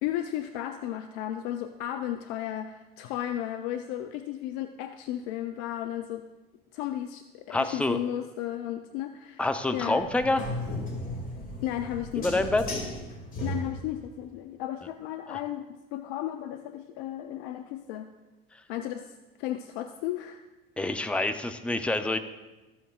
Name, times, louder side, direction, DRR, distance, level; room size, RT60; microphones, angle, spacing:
voice 1, 0.0-6.2 6.7-9.4 9.7-10.0 11.6-12.3 13.4-18.1 18.7-19.1 19.4-20.4, left 12 dB, 55° left, 9 dB, 0.5 m, -34 dB
voice 2, 7.5-8.0 9.4-10.4 12.2-12.6 15.3-15.4 20.8-22.2, left 2 dB, 5° left, 8 dB, 0.6 m, -27 dB
sound 1, 10.0-14.1, left 1 dB, 30° left, 2.3 m, -35 dB
14.0 x 7.1 x 2.4 m, 1.1 s
hypercardioid pair, 75°, 29 cm